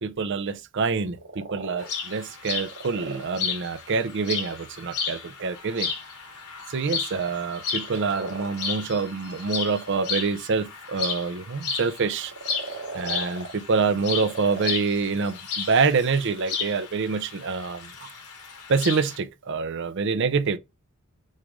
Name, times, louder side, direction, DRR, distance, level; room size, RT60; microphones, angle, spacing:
voice 1, 0.0-5.9 6.7-12.3 12.9-17.9 18.7-20.6, right 4 dB, 55° right, 0.5 m, -26 dB
sound 1, 1.1-1.9 2.5-3.2 7.7-8.5 9.5-10.1 12.1-13.5 14.0-14.7 15.1-15.2 17.3-17.4 17.7-18.1, right 3 dB, 90° right, 1.5 m, -38 dB
sound 2, 1.8-19.2, left 6 dB, 80° left, 1.9 m, -34 dB
6.3 x 2.5 x 3.1 m
head